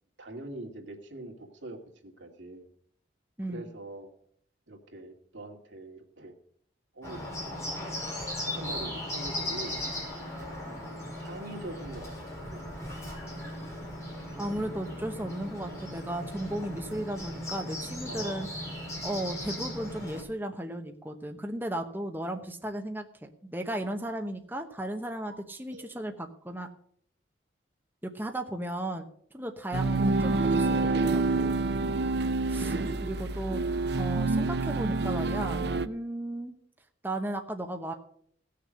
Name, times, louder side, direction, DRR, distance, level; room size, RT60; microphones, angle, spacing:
voice 1, 0.2-2.7 3.5-4.1 4.7-6.3 6.9-7.2 8.5-9.8 10.6-12.1 12.5-12.7 18.0-18.5 25.3-25.4 25.7-25.9, right 2 dB, 80° right, 3 dB, 2.4 m, -43 dB
voice 2, 3.4-3.7 14.4-18.5 19.0-26.7 28.0-29.1 29.3-31.6 32.5-32.7 33.0-33.6 34.0-36.5 37.0-37.9, right 1 dB, 10° right, 4 dB, 0.9 m, -35 dB
Bird, 7.0-20.2, left 1 dB, 15° left, 5.0 m, -37 dB
sound 1, 29.7-35.9, right 3 dB, 60° right, 0.6 m, -27 dB
17.0 x 6.7 x 6.3 m, 0.63 s
head